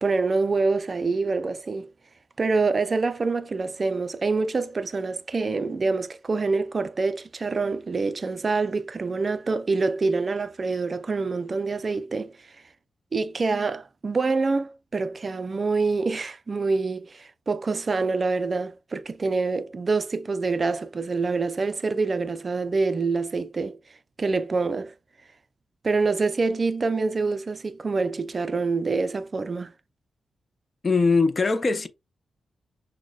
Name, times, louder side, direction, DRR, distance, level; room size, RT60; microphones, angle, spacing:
voice 1, 0.0-1.9 2.4-12.3 13.1-23.8 24.2-24.9 25.8-29.7, right 4 dB, 40° right, 0.4 m, -26 dB
voice 2, 30.8-31.9, left 4 dB, 35° left, 0.5 m, -21 dB
6.1 x 2.1 x 2.3 m
cardioid pair, 100°, 0 cm